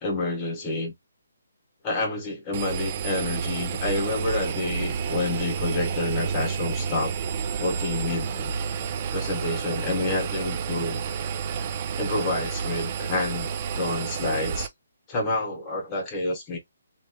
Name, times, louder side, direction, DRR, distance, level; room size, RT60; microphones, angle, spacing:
voice 1, 0.0-0.9 1.8-7.1 7.6-8.5 9.1-11.0 12.0-14.7 15.1-16.6, left 2 dB, 10° left, 1.0 m, -28 dB
Engine, 2.5-14.7, right 6 dB, 25° right, 0.4 m, -30 dB
2.9 x 2.9 x 2.2 m
hypercardioid pair, 175°, 0 cm